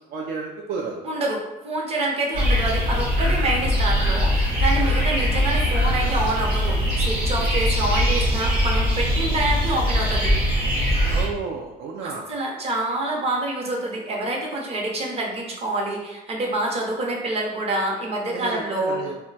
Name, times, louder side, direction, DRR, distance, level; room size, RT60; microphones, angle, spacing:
voice 1, 0.1-1.0 4.8-5.3 9.1-9.3 11.1-12.3 18.3-19.2, right 5 dB, 60° right, -1 dB, 0.4 m, -32 dB
voice 2, 1.0-10.4 12.0-19.0, right 2 dB, 35° right, -1 dB, 0.7 m, -27 dB
sound 1, 2.3-11.3, equal, 90° right, 0.8 m, -21 dB
2.2 x 2.2 x 3.9 m, 1.0 s
cardioid pair, 110°, 17 cm